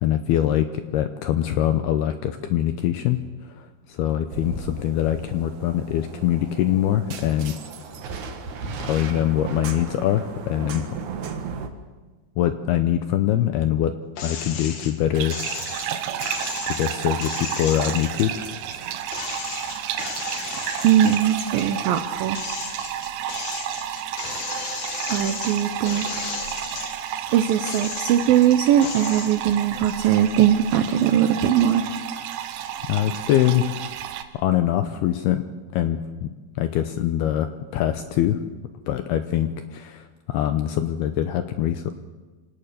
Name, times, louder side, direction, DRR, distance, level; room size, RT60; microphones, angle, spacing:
voice 1, 0.0-3.2 3.6-7.5 8.8-10.9 12.4-13.9 14.2-15.4 16.7-18.5 18.8-18.9 32.9-33.8 34.3-35.5 35.7-36.3 36.6-38.4 38.9-41.9, left 11 dB, 80° left, 9 dB, 2.3 m, -23 dB
Thunder Glass Smash Storm Sounds, 4.3-11.7, right 5 dB, 55° right, 2.3 m, -36 dB
sound 1, 14.2-14.9 15.3-18.8 19.1-21.7 22.1-27.1 27.6-28.4 28.8-29.4, left 6 dB, 65° left, 4.0 m, -34 dB
sound 2, 15.1-34.2, right 10 dB, 75° right, 2.8 m, -31 dB
voice 2, 20.8-22.4 25.1-26.2 27.3-31.8, right 10 dB, 90° right, 8 dB, 2.0 m, -20 dB
26.0 x 18.0 x 6.9 m, 1.3 s
omnidirectional pair, 5.4 m